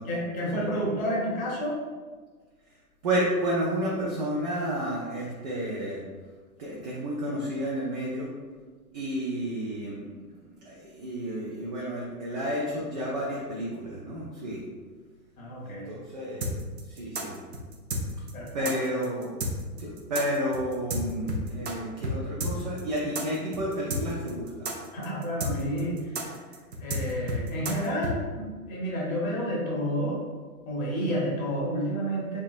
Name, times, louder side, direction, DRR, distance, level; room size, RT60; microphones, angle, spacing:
voice 1, 0.0-1.8 15.4-15.9 18.3-18.7 24.9-26.4 26.8-30.2 30.7-32.4, equal, 60° left, -4 dB, 1.4 m, -30 dB
voice 2, 3.0-6.0 6.6-8.3 8.9-10.2 10.6-14.6 15.6-16.5 16.9-17.4 18.5-19.4 19.8-24.7, equal, 30° right, -5 dB, 0.4 m, -31 dB
sound 1, 16.4-21.7 22.0-22.1 22.4-28.1, equal, 80° right, 0.7 m, -31 dB
3.4 x 2.7 x 2.4 m, 1.4 s
figure-of-eight pair, 105°, 47 cm